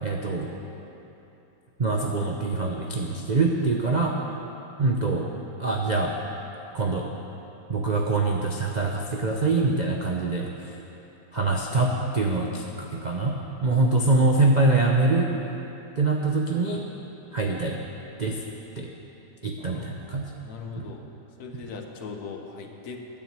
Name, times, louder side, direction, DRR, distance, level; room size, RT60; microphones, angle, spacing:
voice 1, 0.0-0.5 1.8-4.2 4.8-5.3 5.6-6.1 6.7-7.1 7.7-10.7 11.3-15.3 16.0-16.8 17.3-17.8 18.2-18.4 18.8-18.9 19.4-20.3 20.8-20.9, right 3 dB, 55° right, 0 dB, 0.5 m, -24 dB
voice 2, 19.6-19.9 20.4-21.0 21.4-23.2, left 4 dB, 60° left, 3 dB, 1.4 m, -39 dB
10.0 x 9.5 x 7.5 m, 2.9 s
omnidirectional pair, 2.0 m